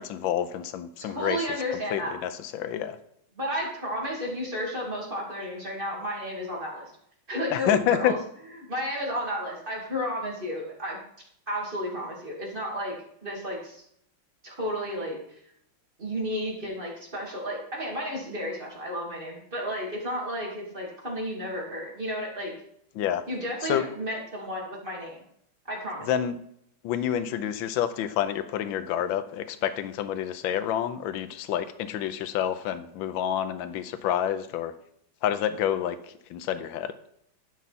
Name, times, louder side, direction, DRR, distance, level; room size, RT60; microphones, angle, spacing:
voice 1, 0.0-1.4 1.9-3.0 7.5-8.1 22.9-23.2 23.7-23.8 26.1-26.4 26.8-34.7 35.2-36.0 36.3-36.9, left 10 dB, 75° left, 10 dB, 1.4 m, -28 dB
voice 2, 1.0-2.1 3.3-6.9 7.3-8.2 8.7-11.0 11.5-12.9 13.2-13.8 14.4-15.4 16.0-22.5 23.3-25.2 25.7-26.2, equal, 25° right, -3 dB, 2.7 m, -32 dB
12.0 x 5.7 x 4.1 m, 0.70 s
omnidirectional pair, 2.2 m